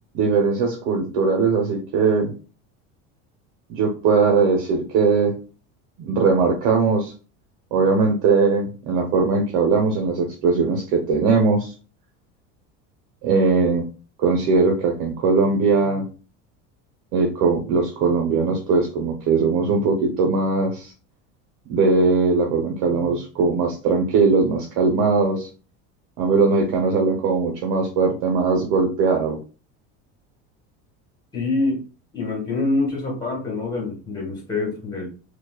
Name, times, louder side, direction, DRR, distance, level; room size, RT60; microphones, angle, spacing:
voice 1, 0.1-2.3 3.7-5.4 6.0-7.1 7.7-11.7 13.2-13.8 14.2-16.0 17.1-20.9 21.7-25.5 26.2-29.4, right 4 dB, 70° right, 0 dB, 1.0 m, -20 dB
voice 2, 31.3-31.8 32.1-35.1, left 3 dB, 10° left, -1 dB, 1.5 m, -25 dB
4.4 x 2.4 x 2.3 m, 0.35 s
supercardioid pair, 125°, 36 cm